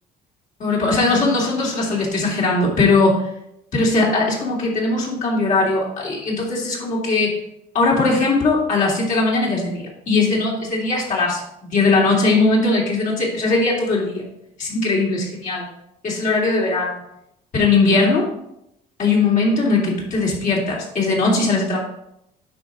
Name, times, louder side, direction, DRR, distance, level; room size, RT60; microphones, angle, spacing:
voice 1, 0.6-3.3 3.7-7.3 7.7-14.3 14.6-15.7 16.0-17.0 17.5-18.3 19.0-21.8, left 3 dB, 50° left, -4 dB, 3.0 m, -19 dB
9.2 x 5.8 x 4.0 m, 0.79 s
cardioid pair, 110°, 17 cm